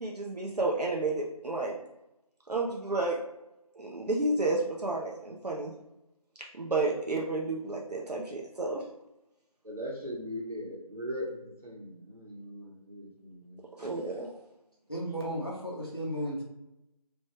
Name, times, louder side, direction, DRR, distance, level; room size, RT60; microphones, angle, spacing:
voice 1, 0.0-1.7 2.5-3.2 3.7-5.7 6.4-8.8 13.8-14.3, right 2 dB, 85° right, -1 dB, 0.6 m, -31 dB
voice 2, 9.6-14.0, equal, 65° right, -2 dB, 1.0 m, -40 dB
voice 3, 14.9-16.4, equal, 40° left, -4 dB, 0.8 m, -34 dB
3.0 x 2.2 x 2.9 m, 0.91 s
figure-of-eight pair, 180°, 20 cm